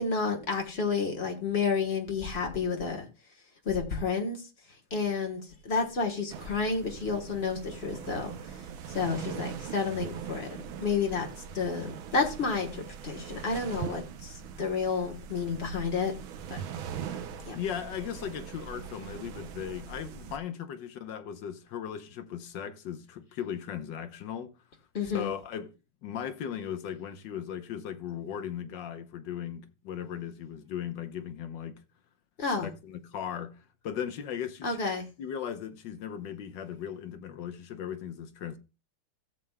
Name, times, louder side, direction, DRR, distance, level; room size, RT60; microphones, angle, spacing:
voice 1, 0.0-3.1 3.6-4.4 4.9-8.3 8.9-11.3 11.5-16.1 16.5-16.6 17.5-17.6 24.9-25.3 32.4-32.7 34.6-35.1, left 5 dB, 35° left, 1.3 m, -30 dB
sound 1, 6.3-20.4, right 7 dB, 70° right, 1.6 m, -41 dB
voice 2, 17.5-24.5 25.1-25.7 26.0-31.8 32.5-34.8 35.2-38.6, left 9 dB, 65° left, 1.3 m, -37 dB
15.5 x 7.2 x 2.2 m
omnidirectional pair, 2.4 m